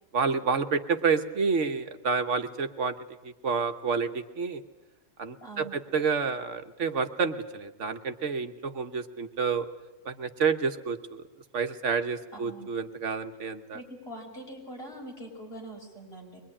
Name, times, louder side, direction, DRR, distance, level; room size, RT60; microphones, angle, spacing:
voice 1, 0.1-2.9 3.2-4.6 5.2-9.7 10.0-11.2 11.5-13.8, right 5 dB, 70° right, 8 dB, 1.5 m, -29 dB
voice 2, 5.4-5.8 12.3-12.7 13.7-16.4, right 1 dB, 50° left, -1 dB, 6.2 m, -43 dB
23.0 x 22.0 x 9.9 m, 1.1 s
omnidirectional pair, 1.3 m